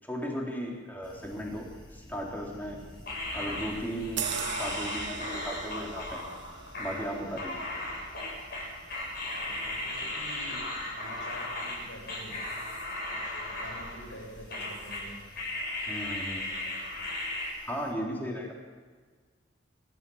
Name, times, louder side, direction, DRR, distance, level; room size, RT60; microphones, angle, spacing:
voice 1, 0.0-2.8 3.3-6.2 6.8-7.7 15.9-16.4 17.6-18.5, equal, 10° left, -1 dB, 3.7 m, -36 dB
voice 2, 1.0-1.3 8.1-8.2 9.3-12.5 13.1-15.2 16.3-17.2, equal, 90° left, 0 dB, 7.4 m, -48 dB
sound 1, 1.0-17.9, equal, 25° left, 3.4 m, -51 dB
sound 2, 3.1-11.8 12.1-14.2 14.5-15.1 15.4-17.5, left 2 dB, 55° left, 8.0 m, -36 dB
sound 3, 4.2-9.1 9.6-9.7, right 8 dB, 70° right, 1.2 m, -40 dB
26.0 x 13.5 x 7.3 m, 1.5 s
head